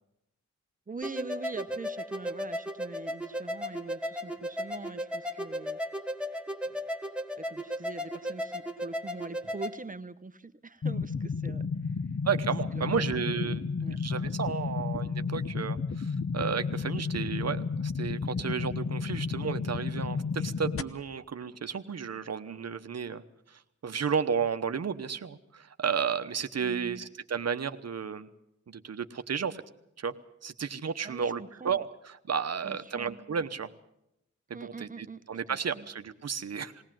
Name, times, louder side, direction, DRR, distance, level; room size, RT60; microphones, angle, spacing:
voice 1, 0.9-5.8 6.6-6.8 7.4-11.9 12.7-14.0 26.6-27.0 31.0-31.8 32.6-33.2 34.5-35.2 35.5-35.9, right 3 dB, 30° right, 11 dB, 1.0 m, -43 dB
sound 1, 1.0-9.7, equal, 5° right, 1.6 m, -35 dB
sound 2, 10.8-20.8, left 5 dB, 50° left, 1.0 m, -32 dB
voice 2, 12.2-13.6 14.0-23.2 23.5-28.3 28.7-29.6 30.0-30.2 30.4-33.7 34.5-36.8, right 6 dB, 60° right, 10 dB, 1.0 m, -33 dB
20.5 x 17.5 x 7.6 m, 0.82 s
cardioid pair, 75°, 29 cm